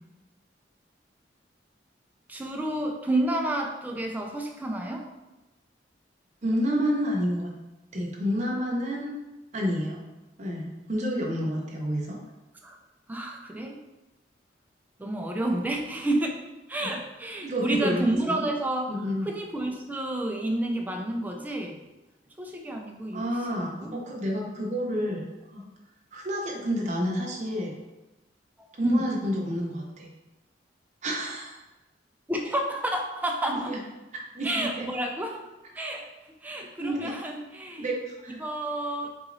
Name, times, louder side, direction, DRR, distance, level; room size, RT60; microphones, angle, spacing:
voice 1, 2.3-5.1 11.4-11.6 12.6-12.8 13.1-13.7 15.0-16.4 16.7-21.8 22.4-24.0 28.8-29.1 32.3-33.7 34.4-35.4 35.7-36.1 36.4-37.9 38.4-39.1, right 1 dB, 10° right, 1 dB, 0.3 m, -30 dB
voice 2, 6.4-7.5 7.9-9.1 9.5-10.0 10.4-12.2 17.4-18.4 18.9-19.3 23.1-25.6 26.1-27.7 28.7-30.1 31.0-31.6 33.7-33.8 34.3-34.9 36.5-37.1 37.8-38.4, equal, 40° right, -1 dB, 0.7 m, -29 dB
3.8 x 3.0 x 2.5 m, 1.1 s
head